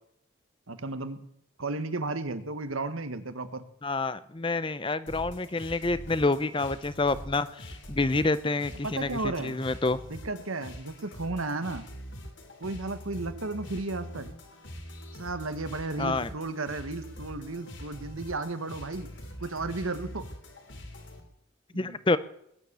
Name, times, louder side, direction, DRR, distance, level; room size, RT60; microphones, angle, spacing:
voice 1, 0.7-1.2 1.6-3.6 8.8-9.7 10.1-11.9 12.6-14.3 15.2-19.1 19.4-20.3 21.7-22.0, right 3 dB, 90° right, 10 dB, 1.5 m, -34 dB
voice 2, 3.8-10.0 16.0-16.3 21.7-22.2, left 3 dB, 25° left, 15 dB, 0.6 m, -28 dB
sound 1, 5.1-21.2, equal, 65° left, 3.2 m, -44 dB
20.5 x 9.8 x 6.9 m, 0.73 s
head